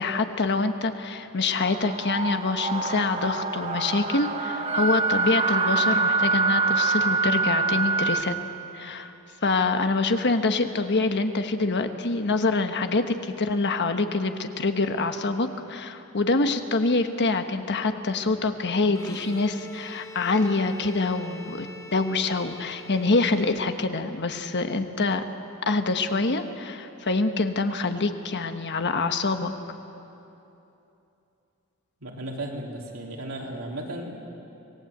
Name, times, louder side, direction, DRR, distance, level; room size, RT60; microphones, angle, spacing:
voice 1, 0.0-8.4 8.7-9.1 9.4-25.3 25.7-29.5, left 3 dB, 55° left, 7 dB, 1.2 m, -25 dB
sound 1, 1.6-8.2, right 4 dB, 30° right, 0.9 m, -25 dB
Bowed string instrument, 18.9-24.1, left 2 dB, 15° left, 1.5 m, -44 dB
voice 2, 32.0-34.3, right 1 dB, 75° right, -1 dB, 3.4 m, -35 dB
26.0 x 18.5 x 8.1 m, 2.9 s
head